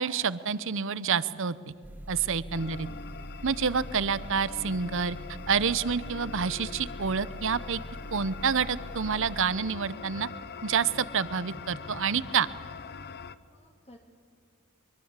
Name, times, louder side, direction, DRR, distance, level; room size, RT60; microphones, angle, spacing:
voice 1, 0.0-1.6 2.1-2.9 3.4-5.2 5.5-7.8 8.1-10.3 10.6-12.5, right 6 dB, 60° right, 17 dB, 0.8 m, -28 dB
sound 1, 1.8-9.4, equal, 10° right, 0.8 m, -43 dB
sound 2, 2.5-13.4, left 5 dB, 50° left, 0.8 m, -43 dB
voice 2, 2.6-3.0 13.5-14.0, left 1 dB, 30° left, 1 dB, 2.0 m, -55 dB
24.0 x 23.0 x 8.2 m, 2.2 s
head